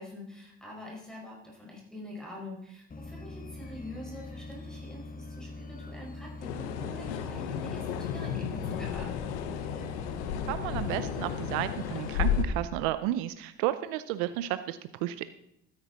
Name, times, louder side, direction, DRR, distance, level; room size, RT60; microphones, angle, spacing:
voice 1, 0.0-9.3, left 1 dB, ahead, -2 dB, 5.2 m, -45 dB
sound 1, 2.9-12.7, left 2 dB, 25° left, 1.3 m, -43 dB
sound 2, 6.4-12.4, left 8 dB, 90° left, 1.0 m, -33 dB
voice 2, 10.5-15.3, right 14 dB, 80° right, 13 dB, 0.6 m, -32 dB
13.0 x 9.8 x 4.1 m, 0.78 s
hypercardioid pair, 65°, 33 cm